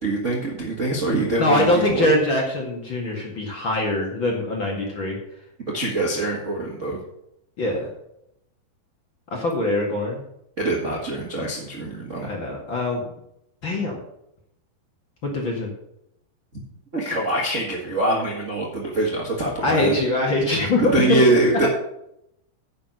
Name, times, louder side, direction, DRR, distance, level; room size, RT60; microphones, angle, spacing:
voice 1, 0.0-2.1 5.7-7.0 10.6-12.3 16.9-19.9 20.5-20.6 20.9-21.7, right 2 dB, 70° right, -3 dB, 0.7 m, -24 dB
voice 2, 1.4-5.2 7.6-7.9 9.3-10.2 12.2-13.0 13.6-13.9 15.2-15.7 19.6-21.2, left 1 dB, 40° left, -1 dB, 1.9 m, -23 dB
10.0 x 6.7 x 6.6 m, 0.79 s
omnidirectional pair, 4.8 m